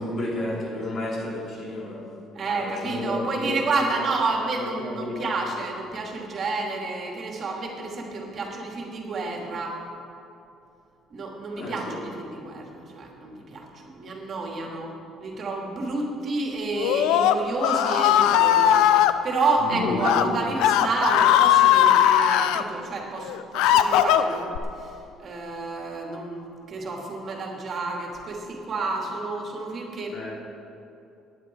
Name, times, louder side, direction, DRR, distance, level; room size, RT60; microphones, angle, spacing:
voice 1, 0.0-2.2 2.4-4.1 4.8-5.3 11.6-12.0 19.6-20.4 30.1-30.4, left 1 dB, 45° left, -3 dB, 3.7 m, -31 dB
voice 2, 2.3-9.8 11.1-14.9 15.2-30.2, right 3 dB, 50° right, 0 dB, 2.8 m, -30 dB
Screaming, 16.7-19.1 19.9-20.2 20.6-22.6 23.2-24.6, left 11 dB, 80° left, 0.6 m, -19 dB
18.0 x 10.0 x 4.7 m, 2.8 s
supercardioid pair, 80°, 0 cm